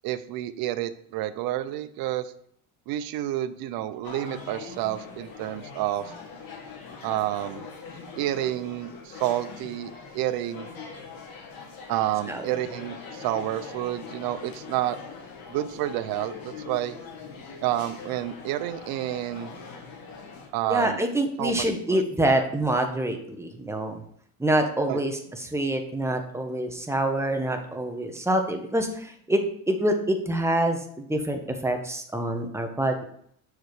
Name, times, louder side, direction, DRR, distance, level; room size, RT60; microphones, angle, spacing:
voice 1, 0.0-2.3 2.9-6.1 7.0-7.7 8.2-10.7 11.9-15.0 15.5-17.0 17.6-19.6 20.5-21.0 21.4-22.0 24.9-25.0, right 13 dB, 80° right, 13 dB, 0.6 m, -29 dB
sound 1, 4.0-20.5, left 5 dB, 70° left, 1.9 m, -42 dB
voice 2, 20.7-24.0 24.4-29.4 29.7-33.0, right 1 dB, 5° right, 4 dB, 1.2 m, -26 dB
6.8 x 4.9 x 4.7 m, 0.66 s
cardioid pair, 95°, 36 cm